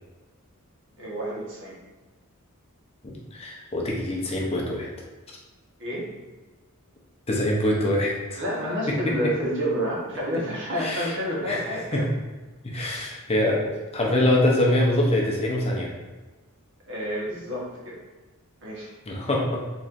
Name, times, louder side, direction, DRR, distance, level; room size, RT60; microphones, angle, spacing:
voice 1, 1.0-1.8 5.8-6.1 8.4-12.0 16.9-17.9 18.6-18.9, equal, 55° right, -4 dB, 1.1 m, -29 dB
voice 2, 3.0-4.9 7.3-8.4 8.9-9.1 10.8-11.2 11.5-12.1 12.6-13.6 13.9-15.9 19.1-19.6, left 1 dB, 25° left, -2 dB, 0.6 m, -24 dB
4.2 x 3.1 x 2.5 m, 1.2 s
head